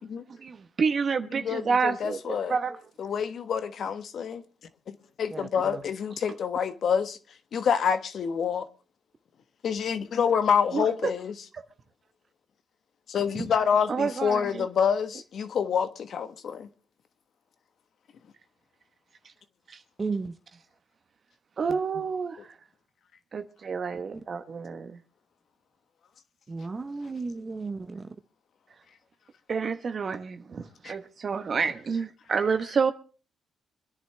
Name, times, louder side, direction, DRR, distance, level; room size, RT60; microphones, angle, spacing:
voice 1, 0.4-2.8 10.7-11.1 11.5-11.6 13.3-13.4 13.9-14.6 21.6-22.4 23.3-24.9 29.5-32.9, right 5 dB, 45° right, 1.1 m, -29 dB
voice 2, 1.4-2.6 3.0-4.4 4.9-7.2 7.5-8.7 9.6-11.3 13.1-16.7 30.8-31.0, left 7 dB, 60° left, 1.3 m, -27 dB
voice 3, 5.3-5.8 20.0-20.3 21.7-21.8 26.5-28.2, right 4 dB, 30° right, 0.8 m, -34 dB
25.5 x 10.5 x 3.4 m
cardioid pair, 90°, 0 cm